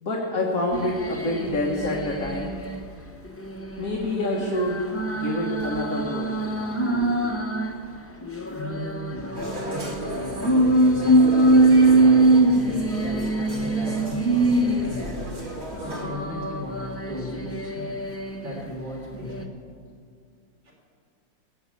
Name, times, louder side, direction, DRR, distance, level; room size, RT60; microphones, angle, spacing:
voice 1, 0.0-2.5 3.8-7.3, left 1 dB, 50° left, -1 dB, 1.8 m, -28 dB
sound 1, 0.7-2.8 3.3-7.8 8.2-15.2 15.7-18.6 19.1-19.4, right 2 dB, 20° left, 0.4 m, -23 dB
voice 2, 8.5-19.6 20.6-20.7, left 1 dB, 85° right, -4 dB, 4.6 m, -37 dB
sound 2, 9.3-16.1, right 1 dB, 35° right, 2.0 m, -34 dB
17.0 x 7.8 x 8.4 m, 2.2 s
omnidirectional pair, 2.0 m